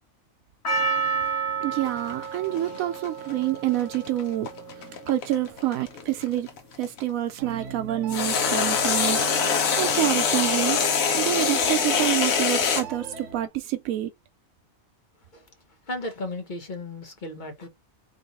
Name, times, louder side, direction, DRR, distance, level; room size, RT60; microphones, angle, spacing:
Percussion, 0.6-5.0 5.6-5.7, right 5 dB, 55° left, 1.8 m, -30 dB
voice 1, 1.6-4.5 4.8-6.5 6.8-10.8 11.2-14.1, right 13 dB, 90° right, 1.0 m, -27 dB
sound 1, 1.8-7.0 8.1-12.8, left 6 dB, 80° left, 1.3 m, -24 dB
sound 2, 7.4-13.5, right 6 dB, 65° right, 1.1 m, -39 dB
voice 2, 15.9-17.7, left 1 dB, 35° left, 1.3 m, -35 dB
3.8 x 3.4 x 4.0 m
omnidirectional pair, 1.4 m